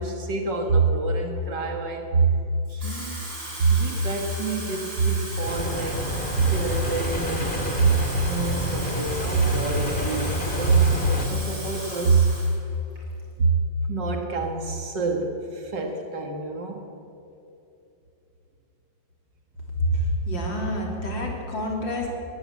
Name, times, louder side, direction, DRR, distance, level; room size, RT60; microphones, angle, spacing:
voice 1, 0.0-2.4 2.7-3.2 3.6-6.1 6.4-12.3 13.4-13.6 13.9-16.8, right 4 dB, 70° right, 3 dB, 2.2 m, -25 dB
Water tap faucet / Fill (with liquid), 2.7-12.6 13.0-13.2, right 1 dB, 85° right, 7.2 m, -37 dB
sound 1, 5.4-11.3, equal, 25° left, 2.4 m, -29 dB
voice 2, 19.8-22.1, equal, 85° left, 0 dB, 4.3 m, -27 dB
21.0 x 15.0 x 8.4 m, 2.8 s
omnidirectional pair, 2.0 m